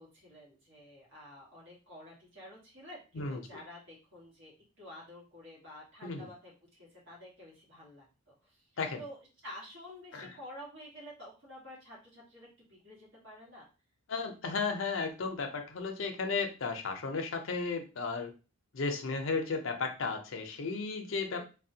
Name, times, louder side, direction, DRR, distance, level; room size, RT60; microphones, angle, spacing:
voice 1, 0.0-8.6 9.0-9.2 9.4-13.7 21.3-21.4, left 1 dB, 55° right, -4 dB, 1.5 m, -50 dB
voice 2, 3.1-3.6 6.0-6.3 8.8-9.0 10.1-10.3 14.1-18.3 18.7-21.4, left 4 dB, 65° left, 4 dB, 0.5 m, -34 dB
3.3 x 2.2 x 2.7 m, 0.33 s
head